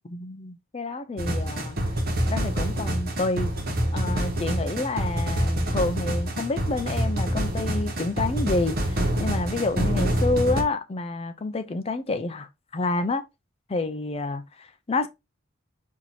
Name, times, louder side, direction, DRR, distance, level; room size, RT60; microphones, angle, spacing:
voice 1, 0.0-1.8 2.3-3.5 3.9-13.2 13.7-15.1, left 3 dB, 30° left, 0.4 m, -29 dB
sound 1, 1.2-10.6, equal, 45° right, 1.1 m, -26 dB
4.6 x 2.7 x 4.1 m
head